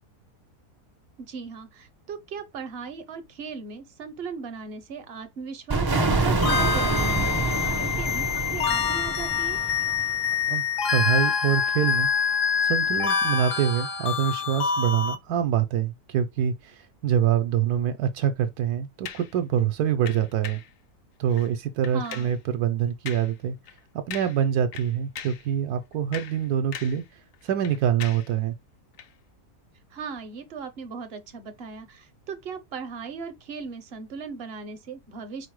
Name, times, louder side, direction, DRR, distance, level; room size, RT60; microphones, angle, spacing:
voice 1, 1.3-9.6 21.9-22.4 29.9-35.5, right 5 dB, 55° right, 0.7 m, -38 dB
sound 1, 5.7-10.4, right 3 dB, 35° right, 0.3 m, -26 dB
sound 2, 6.4-15.2, left 7 dB, 80° left, 1.3 m, -26 dB
voice 2, 10.9-12.1 12.6-20.6 21.2-23.6 24.1-27.0 27.4-28.5, right 9 dB, 80° right, 1.1 m, -25 dB
sound 3, 19.0-19.3 20.1-20.7 21.3-21.5 21.8-22.4 23.1-23.4 23.7-23.8 24.1-24.5 24.7-25.5 25.9-27.1 27.3-28.3 28.9-29.1, left 9 dB, 65° left, 0.9 m, -40 dB
4.9 x 2.0 x 4.6 m
omnidirectional pair, 1.7 m